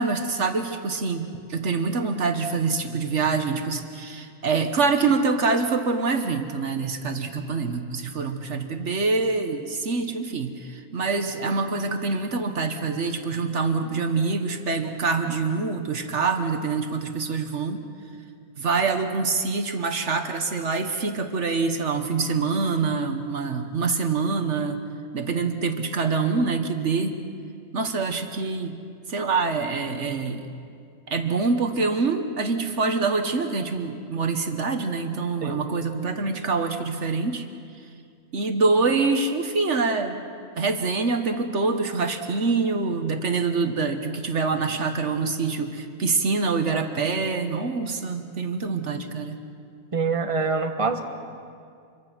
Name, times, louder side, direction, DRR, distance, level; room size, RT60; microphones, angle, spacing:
voice 1, 0.0-17.9 18.6-24.8 25.1-27.2 27.7-28.8 29.1-30.4 31.1-37.5 38.3-40.3 40.5-49.4, right 4 dB, 60° right, 6 dB, 1.4 m, -25 dB
voice 2, 49.9-51.0, right 4 dB, 25° right, 5 dB, 1.3 m, -25 dB
26.5 x 23.0 x 6.0 m, 2.3 s
omnidirectional pair, 1.4 m